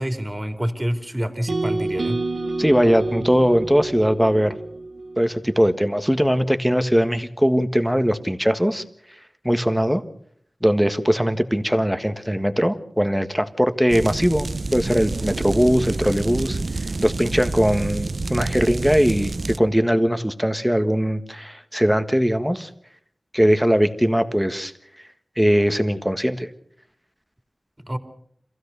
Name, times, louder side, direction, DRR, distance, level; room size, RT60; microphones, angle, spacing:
voice 1, 0.0-2.2 27.8-28.0, equal, 20° right, 6 dB, 2.7 m, -27 dB
sound 1, 1.5-5.6, right 2 dB, 80° right, 1.4 m, -28 dB
voice 2, 2.6-4.6 5.2-8.8 9.4-10.0 10.6-16.6 17.0-22.7 23.3-24.7 25.4-26.5, equal, 5° right, 9 dB, 1.5 m, -20 dB
sound 2, 13.9-19.6, right 3 dB, 55° right, 0.8 m, -28 dB
26.5 x 16.0 x 6.8 m, 0.65 s
wide cardioid pair, 75°, 0 cm